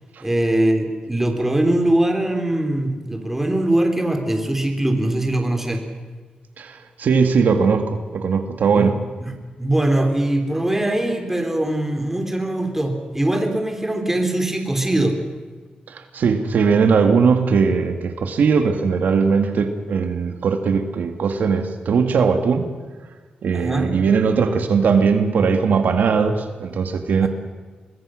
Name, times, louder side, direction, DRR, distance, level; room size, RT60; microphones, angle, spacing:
voice 1, 0.2-5.8 8.7-8.9 9.2-9.3 9.6-15.2 23.5-23.9 27.2-27.3, right 1 dB, 10° right, 4 dB, 3.4 m, -21 dB
voice 2, 6.6-9.0 15.9-22.7 23.4-27.3, right 5 dB, 80° right, 7 dB, 1.9 m, -19 dB
25.0 x 21.0 x 6.4 m, 1.4 s
wide cardioid pair, 105°, 3 cm